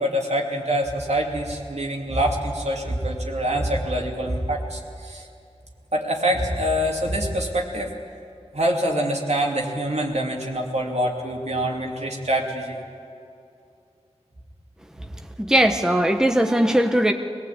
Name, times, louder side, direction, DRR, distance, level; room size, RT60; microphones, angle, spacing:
voice 1, 0.0-5.3 5.9-7.9 8.5-12.8 15.0-15.1, right 1 dB, 75° right, 0 dB, 2.8 m, -25 dB
voice 2, 15.4-17.1, right 1 dB, 5° right, 6 dB, 1.1 m, -19 dB
22.0 x 18.0 x 8.6 m, 2.5 s
wide cardioid pair, 60°, 11 cm